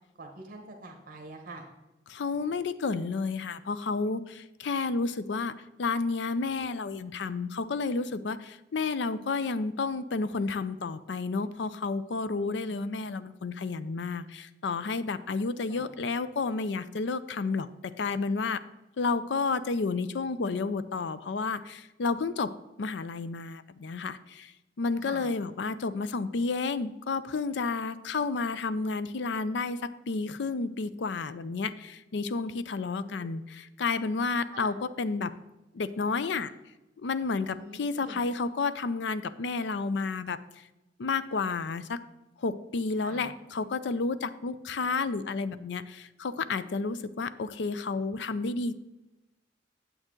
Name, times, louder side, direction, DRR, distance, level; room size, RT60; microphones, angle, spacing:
voice 1, 0.2-1.6 15.7-15.9 25.0-25.3 33.1-33.3 34.5-34.8 37.5-38.2 43.0-43.3, right 2 dB, 50° right, 2 dB, 1.1 m, -45 dB
voice 2, 2.1-18.6 19.0-24.5 24.8-35.3 35.7-36.5 37.0-40.6 41.0-42.0 42.4-48.7, left 4 dB, 75° left, 14 dB, 0.5 m, -31 dB
8.9 x 7.8 x 3.7 m, 1.0 s
head